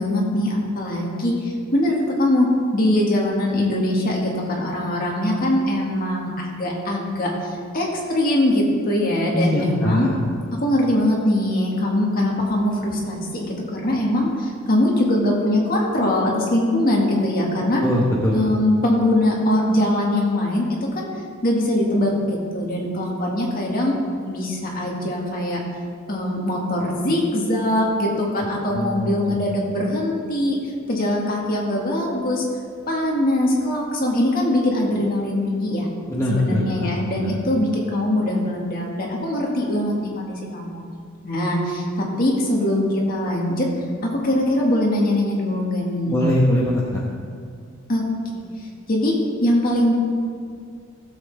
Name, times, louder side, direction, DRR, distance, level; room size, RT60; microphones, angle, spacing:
voice 1, 0.0-2.5 2.7-10.1 10.6-17.8 18.3-20.7 21.0-21.1 21.4-22.1 22.5-23.9 24.2-25.6 26.1-30.6 30.9-32.4 32.9-35.9 36.3-40.8 41.2-43.7 44.0-46.3 47.9-48.0 48.9-49.2 49.4-49.9, left 1 dB, 45° left, -2 dB, 2.0 m, -22 dB
voice 2, 9.3-10.1 17.8-18.4 28.7-29.4 36.1-36.9 37.2-37.3 46.0-47.0, left 1 dB, 15° left, -5 dB, 1.1 m, -22 dB
16.0 x 7.7 x 3.5 m, 2.2 s
head